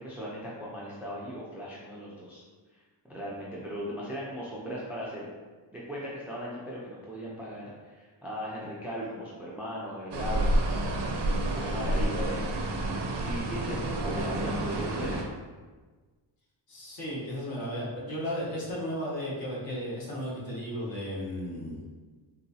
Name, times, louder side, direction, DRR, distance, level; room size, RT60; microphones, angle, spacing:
voice 1, 0.0-2.4 3.0-5.3 5.7-15.3, equal, 5° right, -6 dB, 0.4 m, -38 dB
sound 1, 10.1-15.2, right 1 dB, 60° right, 0.6 m, -29 dB
voice 2, 16.7-21.8, equal, 50° left, -5 dB, 1.0 m, -34 dB
3.9 x 2.3 x 2.6 m, 1.4 s
wide cardioid pair, 160°, 47 cm